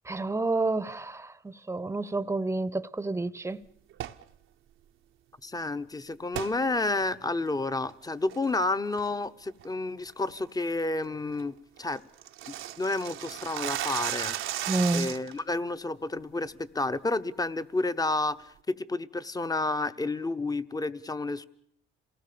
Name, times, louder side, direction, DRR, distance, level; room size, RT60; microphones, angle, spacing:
voice 1, 0.1-1.3 1.7-3.6 14.7-15.1, right 2 dB, 15° right, 0.9 m, -29 dB
sound 1, 3.9-4.2 6.3-6.5 7.0-7.1 7.7-7.9 8.3-8.6 9.0-9.3 9.6-9.7 10.1-10.3 10.7-10.8 11.1-11.2 11.4-11.5 11.8-15.4, right 12 dB, 80° right, 0.9 m, -34 dB
voice 2, 5.4-12.0 12.5-14.4 14.9-21.5, left 2 dB, 20° left, 1.0 m, -30 dB
27.0 x 18.5 x 6.9 m
cardioid pair, 90°, 20 cm